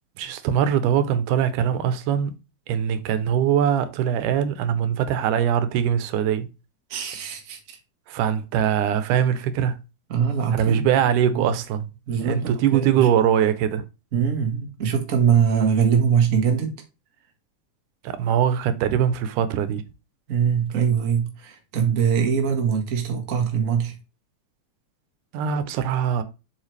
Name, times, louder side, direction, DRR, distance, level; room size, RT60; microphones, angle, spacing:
voice 1, 0.2-2.3 2.7-6.5 8.1-9.8 10.5-11.9 12.2-13.8 18.0-19.8 25.3-26.2, right 9 dB, 90° right, 2.3 m, -22 dB
voice 2, 6.9-7.8 10.1-10.9 11.2-11.5 12.1-13.1 14.1-16.8 20.3-24.0, right 7 dB, 45° right, 1.0 m, -22 dB
7.4 x 4.8 x 3.3 m
omnidirectional pair, 3.6 m